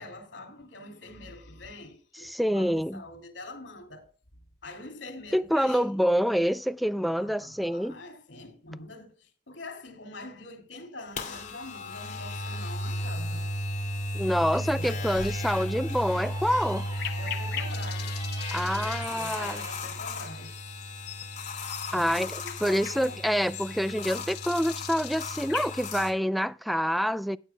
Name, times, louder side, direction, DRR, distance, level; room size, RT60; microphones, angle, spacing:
voice 1, 0.0-4.1 4.6-5.9 7.2-13.5 14.4-15.2 17.2-18.2 18.6-20.6 21.9-23.2, left 2 dB, 85° left, 2.8 m, -44 dB
voice 2, 2.3-3.0 5.3-8.0 14.1-16.9 18.5-19.6 21.9-27.4, equal, ahead, 0.4 m, -27 dB
sound 1, 11.2-26.1, left 1 dB, 40° left, 2.4 m, -35 dB
sound 2, 15.0-19.9, equal, 20° right, 4.2 m, -44 dB
sound 3, 16.9-25.7, left 10 dB, 60° left, 1.0 m, -41 dB
16.0 x 9.3 x 2.3 m
head